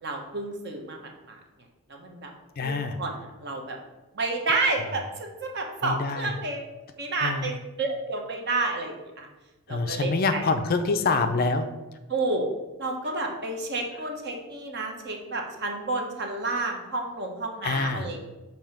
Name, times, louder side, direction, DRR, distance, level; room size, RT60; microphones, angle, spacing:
voice 1, 0.0-1.4 1.9-2.3 2.6-3.1 3.4-3.8 4.1-6.6 7.0-9.3 9.7-10.4 12.1-12.5 12.8-18.3, right 3 dB, 50° right, 2 dB, 0.9 m, -30 dB
voice 2, 2.6-3.0 5.8-6.3 7.2-7.5 9.7-11.7 17.6-18.1, left 3 dB, 40° left, 8 dB, 0.4 m, -26 dB
6.9 x 2.8 x 5.7 m, 1.1 s
head